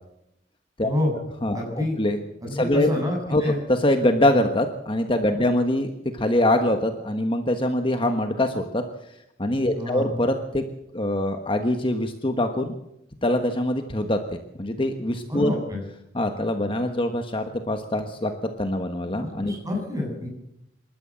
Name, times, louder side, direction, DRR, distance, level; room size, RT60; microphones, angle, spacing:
voice 1, 0.8-1.1 1.5-2.0 2.4-3.6 5.3-5.4 9.7-10.1 15.3-15.8 19.4-20.3, left 1 dB, 20° right, 0 dB, 7.9 m, -27 dB
voice 2, 1.4-2.2 2.5-2.9 3.3-8.8 9.4-10.6 10.9-12.8 13.2-15.5 16.1-18.3 18.6-19.5, left 1 dB, 30° left, 6 dB, 1.3 m, -24 dB
27.5 x 13.0 x 7.6 m, 0.83 s
head